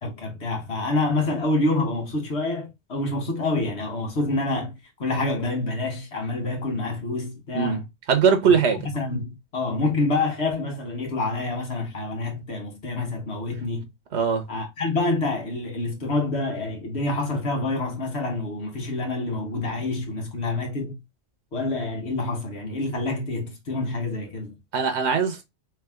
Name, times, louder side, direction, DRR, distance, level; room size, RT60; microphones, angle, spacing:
voice 1, 0.0-4.7 5.0-7.9 8.4-13.9 14.5-21.0 21.5-24.6, left 2 dB, 75° left, 1.7 m, -27 dB
voice 2, 8.1-8.8 14.1-14.4 24.7-25.4, right 6 dB, 85° right, 1.1 m, -20 dB
3.5 x 3.2 x 3.4 m
omnidirectional pair, 1.1 m